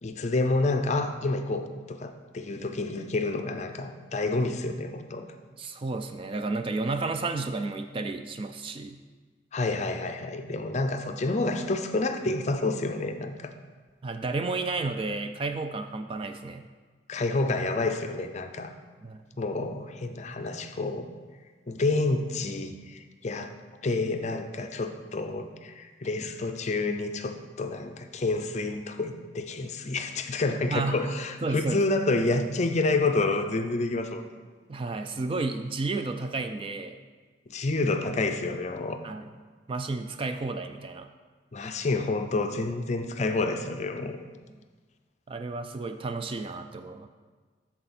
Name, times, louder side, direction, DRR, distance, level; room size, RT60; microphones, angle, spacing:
voice 1, 0.0-5.3 9.5-13.5 17.1-18.7 19.4-21.1 21.7-23.5 23.8-34.3 37.5-39.0 41.5-44.2, left 2 dB, 35° left, 7 dB, 0.5 m, -29 dB
voice 2, 5.6-9.0 14.0-16.7 19.0-19.2 30.7-31.0 31.4-31.8 34.7-37.0 39.0-39.3 39.7-41.1 45.3-47.1, right 3 dB, 25° right, 7 dB, 0.3 m, -32 dB
13.0 x 4.3 x 4.2 m, 1.4 s
head